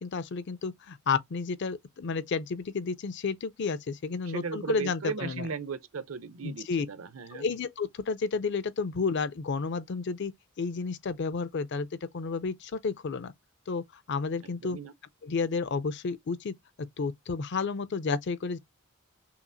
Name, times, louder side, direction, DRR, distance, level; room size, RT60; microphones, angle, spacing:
voice 1, 0.0-5.5 6.4-6.9 7.3-13.3 13.7-14.8 15.2-16.5 17.0-18.6, left 4 dB, 55° left, 0.5 m, -31 dB
voice 2, 4.3-7.4 14.6-14.9, right 5 dB, 70° right, 0.6 m, -36 dB
5.7 x 2.4 x 2.6 m
head